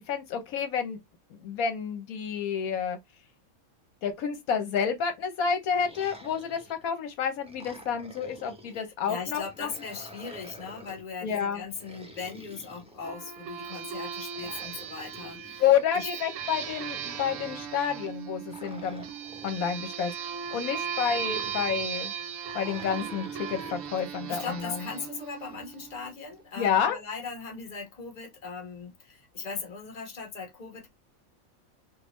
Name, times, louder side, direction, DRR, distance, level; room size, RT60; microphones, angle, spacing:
voice 1, 0.1-1.0 1.4-3.0 4.0-9.7 11.2-11.6 15.6-19.1 19.4-22.1 22.5-24.8 26.6-27.0, left 7 dB, 75° left, 1.1 m, -29 dB
sound 1, 5.7-7.0 7.4-8.9 9.4-11.1 11.7-13.4 14.3-15.6 16.4-17.7 18.5-19.8 20.4-22.0 22.4-23.9, equal, 10° right, 0.4 m, -48 dB
voice 2, 8.7-15.6 15.9-16.1 24.3-30.9, left 5 dB, 35° left, 1.1 m, -39 dB
sound 2, 13.0-26.2, right 8 dB, 70° right, 0.9 m, -37 dB
3.5 x 2.5 x 3.0 m
omnidirectional pair, 1.5 m